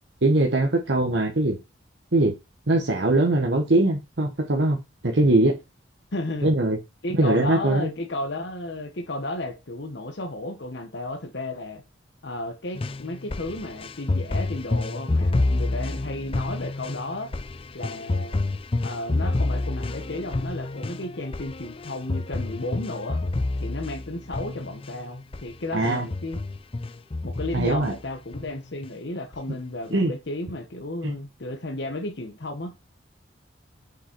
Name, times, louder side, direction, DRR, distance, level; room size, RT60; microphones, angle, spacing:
voice 1, 0.2-1.6 2.1-2.3 2.7-4.8 5.0-5.5 6.4-6.8 7.1-7.9 25.7-26.1 27.5-27.9 29.9-30.1 31.0-31.1, right 2 dB, 65° right, 1.2 m, -21 dB
voice 2, 6.1-6.5 7.0-11.8 12.2-17.3 17.7-18.4 18.8-23.2 23.6-26.4 27.2-32.7, left 2 dB, 65° left, 1.1 m, -33 dB
sound 1, 12.8-25.0 25.3-25.5 25.8-28.0 28.3-28.9 29.3-29.4, left 2 dB, 30° left, 0.5 m, -28 dB
6.7 x 5.2 x 4.5 m
head